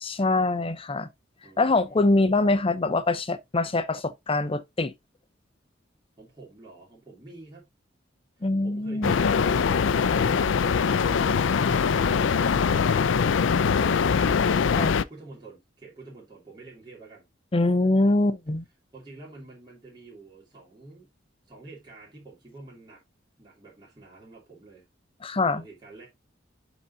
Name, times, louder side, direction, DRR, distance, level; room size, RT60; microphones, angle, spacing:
voice 1, 0.0-1.1 1.6-4.9 8.4-9.1 14.7-15.0 17.5-18.6 25.2-25.6, left 2 dB, 30° left, 0.6 m, -24 dB
voice 2, 1.4-2.3 6.2-7.7 8.4-14.5 15.1-17.3 18.9-21.1 21.5-23.0 23.4-24.9 25.5-26.1, right 3 dB, 25° right, 2.9 m, -48 dB
sound 1, 9.0-15.0, left 6 dB, 75° left, 0.4 m, -22 dB
11.0 x 4.0 x 2.7 m
head